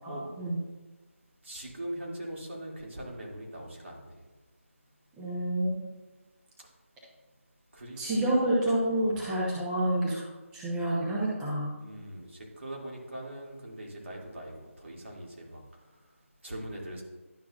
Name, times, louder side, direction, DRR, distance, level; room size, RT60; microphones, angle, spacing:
voice 1, 0.0-0.6 5.2-5.9 8.0-10.2 10.5-11.7, right 1 dB, 5° right, -7 dB, 1.0 m, -28 dB
voice 2, 1.4-4.3 6.6-6.7 7.7-8.7 8.9-9.3 11.8-17.0, right 1 dB, 60° right, -2 dB, 2.4 m, -42 dB
11.5 x 5.9 x 2.4 m, 1.2 s
figure-of-eight pair, 160°, 8 cm